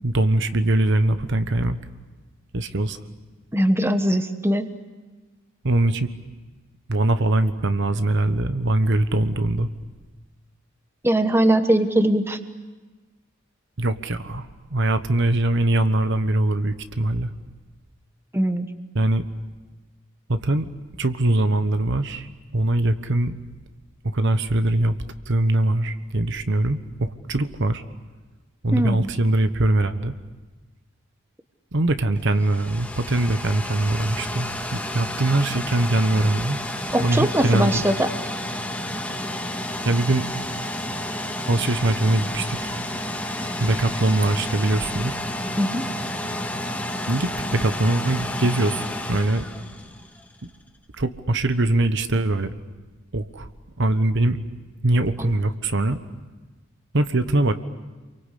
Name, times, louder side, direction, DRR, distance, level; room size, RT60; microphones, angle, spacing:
voice 1, 0.0-1.8 2.5-3.0 5.6-6.1 6.9-9.7 13.8-17.3 18.9-19.3 20.3-20.7 21.0-22.3 22.5-23.4 24.1-25.0 25.3-27.8 28.6-30.1 31.7-36.6 37.0-37.8 39.8-40.2 41.5-42.6 43.6-45.2 47.1-49.4 51.0-52.5 53.1-53.5 53.8-54.4 54.8-56.0 56.9-57.5, right 2 dB, 60° right, 10 dB, 1.1 m, -22 dB
voice 2, 3.5-4.7 11.0-12.4 18.3-18.7 28.7-29.1 36.9-38.1 45.6-45.9 55.2-55.3, right 1 dB, 10° right, 8 dB, 1.2 m, -21 dB
sound 1, 32.1-50.3, left 1 dB, 10° left, 2.1 m, -31 dB
28.5 x 23.5 x 8.4 m, 1.3 s
head